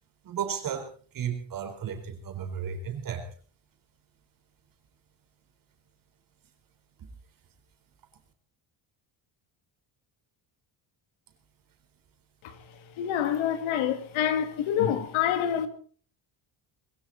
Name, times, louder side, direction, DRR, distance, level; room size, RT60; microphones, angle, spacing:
voice 1, 0.2-0.9 1.1-3.3 7.0-7.1, right 8 dB, 45° right, 4.3 m, -34 dB
voice 2, 13.0-15.7, left 9 dB, 80° left, 2.4 m, -27 dB
21.5 x 16.0 x 4.2 m
cardioid pair, 170°, 47 cm